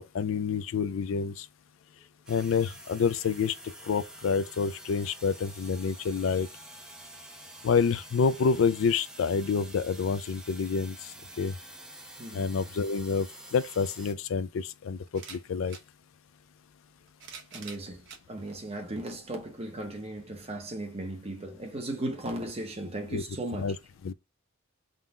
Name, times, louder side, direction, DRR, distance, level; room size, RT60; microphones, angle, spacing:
voice 1, 0.0-1.5 2.3-3.5 3.9-6.5 7.6-11.0 11.4-11.5 12.3-13.3 13.5-15.8 23.1-23.2 23.5-23.8 24.0-24.1, left 5 dB, 65° left, 0.4 m, -28 dB
sound 1, 2.3-14.1, right 1 dB, 5° right, 0.6 m, -48 dB
sound 2, 15.1-15.9 16.9-18.2 19.0-19.1 20.4-20.5, right 5 dB, 60° right, 0.9 m, -46 dB
voice 2, 17.5-23.7, right 1 dB, 30° right, 1.0 m, -36 dB
3.8 x 2.4 x 4.1 m
head